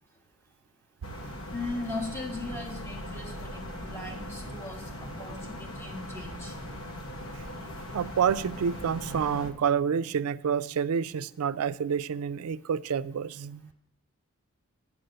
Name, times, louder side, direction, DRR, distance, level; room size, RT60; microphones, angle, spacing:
sound 1, 1.0-9.5, equal, 70° left, 1.2 m, -40 dB
voice 1, 1.5-4.9 5.2-6.5, left 2 dB, 10° left, 1 dB, 1.3 m, -38 dB
voice 2, 7.9-13.7, right 7 dB, 85° right, 17 dB, 0.4 m, -28 dB
7.8 x 5.9 x 7.8 m, 0.69 s
head